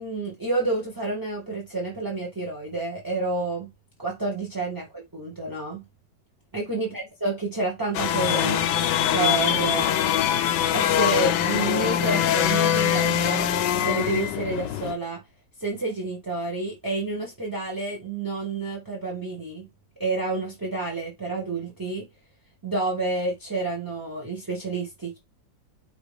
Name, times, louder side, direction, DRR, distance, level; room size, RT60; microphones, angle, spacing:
voice 1, 0.0-3.7 4.0-5.8 6.5-8.7 9.1-9.9 10.7-13.5 13.8-15.2 15.6-19.7 20.0-22.0 22.6-25.2, right 3 dB, 15° right, 0.8 m, -29 dB
sound 1, 7.9-14.9, left 10 dB, 75° left, 1.2 m, -23 dB
5.2 x 3.0 x 3.3 m
omnidirectional pair, 2.0 m